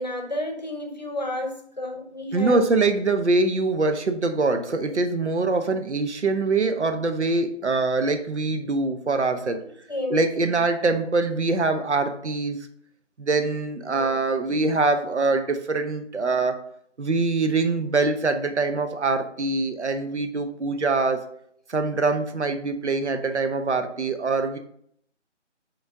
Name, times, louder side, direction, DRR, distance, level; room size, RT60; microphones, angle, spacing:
voice 1, 0.0-2.6 9.9-10.2 13.9-14.2, left 1 dB, 35° left, 3 dB, 0.8 m, -31 dB
voice 2, 2.3-9.6 10.1-12.6 13.2-16.6 17.0-21.3 21.7-24.6, right 3 dB, 70° right, 8 dB, 0.9 m, -24 dB
6.9 x 4.0 x 3.6 m, 0.68 s
figure-of-eight pair, 170°, 36 cm